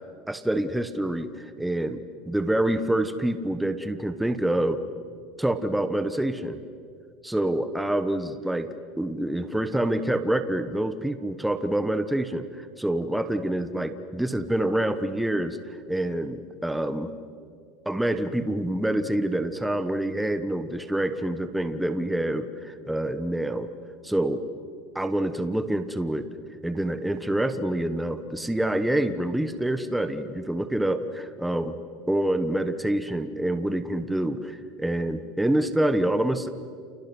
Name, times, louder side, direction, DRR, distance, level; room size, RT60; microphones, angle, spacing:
voice 1, 0.3-2.0 2.3-4.8 5.4-6.6 7.2-8.7 9.0-17.1 17.8-23.7 24.0-24.4 24.9-26.3 26.6-31.8 32.1-36.5, right 1 dB, 5° right, 9 dB, 1.1 m, -26 dB
30.0 x 28.5 x 6.2 m, 2.2 s
cardioid pair, 150°, 0 cm